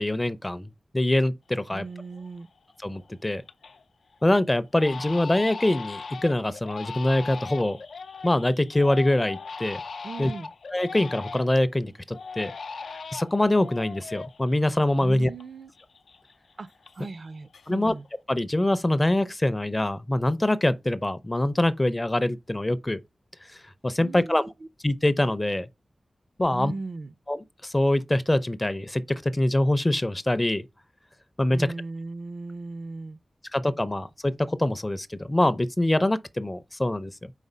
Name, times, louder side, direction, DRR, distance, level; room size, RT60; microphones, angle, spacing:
voice 1, 0.0-1.8 2.8-3.4 4.2-7.8 8.2-9.8 10.2-10.3 10.7-12.5 13.1-15.3 17.7-17.9 18.3-23.0 23.8-24.4 24.8-25.7 26.4-26.7 27.3-30.7 31.4-31.7 33.5-37.3, left 1 dB, 20° left, 0.5 m, -24 dB
voice 2, 1.7-2.5 10.0-10.5 15.0-15.7 16.6-16.7 16.9-18.1 24.0-24.5 26.5-27.1 31.5-33.2, right 3 dB, 60° right, 0.5 m, -37 dB
Crying sobbing, 2.1-2.6 3.0-3.8 4.1-4.3 4.7-11.7 12.1-15.5 15.7-17.2 17.5-18.1, left 4 dB, 90° left, 0.5 m, -39 dB
4.9 x 3.8 x 5.4 m
wide cardioid pair, 105°, 0 cm